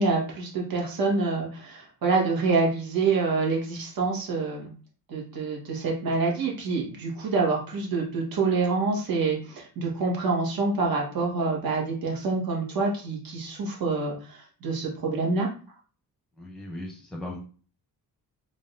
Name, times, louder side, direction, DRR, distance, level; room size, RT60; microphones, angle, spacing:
voice 1, 0.0-4.7 5.1-15.5, right 3 dB, 70° right, -1 dB, 1.7 m, -26 dB
voice 2, 16.4-17.4, left 1 dB, ahead, 0 dB, 0.8 m, -37 dB
3.8 x 3.5 x 2.7 m, 0.39 s
cardioid pair, 125°, 37 cm